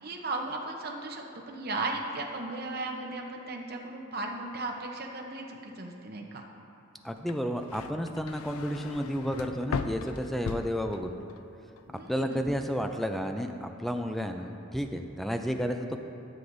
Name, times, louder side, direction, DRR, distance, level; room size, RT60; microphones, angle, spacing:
voice 1, 0.0-6.4 11.9-12.4, right 2 dB, 50° right, 1 dB, 0.8 m, -36 dB
voice 2, 7.0-11.1 12.1-16.0, equal, ahead, 5 dB, 0.3 m, -32 dB
sound 1, 7.2-11.4 11.8-12.3, left 5 dB, 90° left, 0.3 m, -38 dB
13.0 x 7.7 x 2.6 m, 2.8 s
head